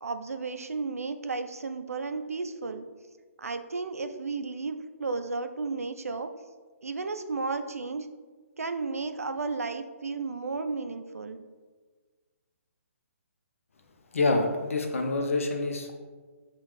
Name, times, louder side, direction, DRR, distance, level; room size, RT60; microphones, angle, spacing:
voice 1, 0.0-2.8 3.4-6.3 6.8-8.1 8.6-11.4, right 4 dB, 85° right, 8 dB, 0.4 m, -33 dB
voice 2, 14.1-15.9, left 3 dB, 70° left, 3 dB, 0.7 m, -26 dB
5.6 x 2.4 x 3.2 m, 1.4 s
figure-of-eight pair, 140°, 8 cm